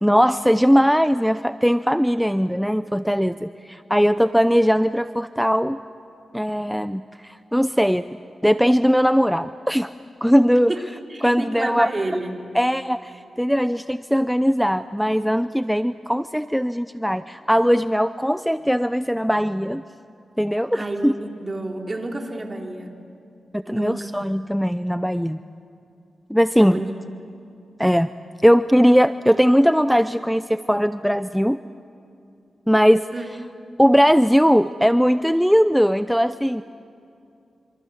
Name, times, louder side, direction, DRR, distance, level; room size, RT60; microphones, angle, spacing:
voice 1, 0.0-5.8 6.3-8.1 8.4-9.9 10.2-10.7 11.2-11.9 12.5-19.8 20.4-21.1 23.5-25.4 26.3-26.8 27.8-28.1 28.4-31.6 32.7-33.1 33.8-36.6, equal, ahead, 13 dB, 0.6 m, -19 dB
voice 2, 11.1-12.3 20.7-22.9 23.7-24.1 26.6-26.9 33.1-33.3, right 2 dB, 35° right, 3 dB, 3.7 m, -30 dB
26.5 x 26.0 x 8.1 m, 2.6 s
cardioid pair, 50°, 0 cm